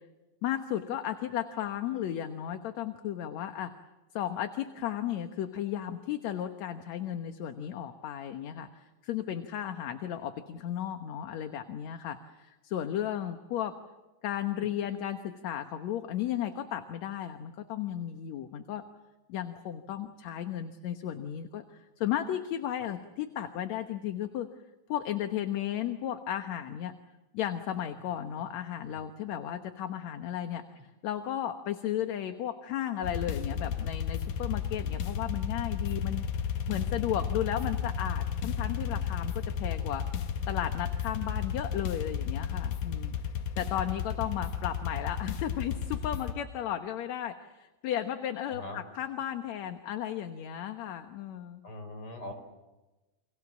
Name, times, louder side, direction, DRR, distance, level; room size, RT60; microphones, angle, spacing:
voice 1, 0.4-3.7 4.1-13.7 14.2-18.8 19.3-24.5 24.9-26.9 27.3-30.6 31.0-36.2 36.7-40.0 40.5-43.1 43.6-51.6, left 11 dB, 65° left, 7 dB, 2.4 m, -34 dB
sound 1, 33.0-46.3, left 7 dB, 85° left, 3.1 m, -33 dB
voice 2, 48.5-48.8 51.6-52.3, left 1 dB, 45° left, 7 dB, 5.7 m, -42 dB
30.0 x 26.0 x 7.3 m, 1.1 s
omnidirectional pair, 3.5 m